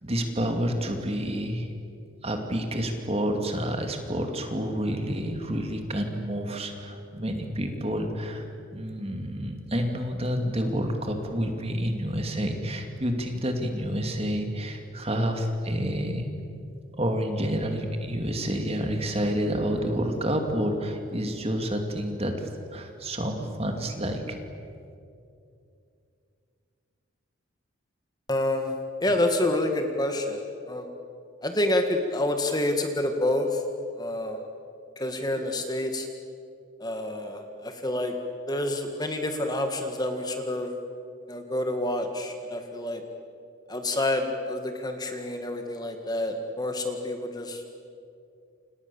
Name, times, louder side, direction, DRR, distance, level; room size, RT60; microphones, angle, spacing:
voice 1, 0.0-1.7 2.2-8.4 8.7-16.3 17.0-24.4, equal, 30° right, 4 dB, 2.8 m, -29 dB
voice 2, 28.3-28.7 29.0-30.9 31.4-33.6 34.0-34.4 35.0-36.1 36.8-38.1 38.5-40.7 41.3-43.0 43.7-47.6, left 1 dB, 20° left, 5 dB, 1.8 m, -28 dB
29.5 x 27.5 x 7.2 m, 2.5 s
head